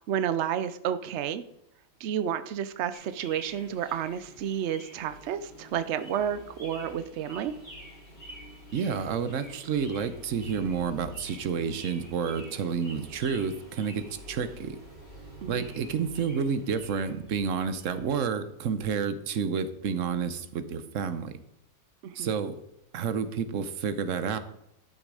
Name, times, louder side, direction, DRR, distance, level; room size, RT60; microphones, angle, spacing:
voice 1, 0.0-1.4 2.0-7.5 15.4-15.7 22.0-22.3, right 9 dB, 90° right, 12 dB, 0.6 m, -31 dB
sound 1, 2.9-18.1, equal, 25° left, 3.0 m, -47 dB
voice 2, 8.7-14.8 15.5-21.3 22.1-22.5 22.9-24.4, right 6 dB, 55° right, 11 dB, 0.9 m, -30 dB
12.5 x 6.4 x 4.8 m, 0.81 s
omnidirectional pair, 1.9 m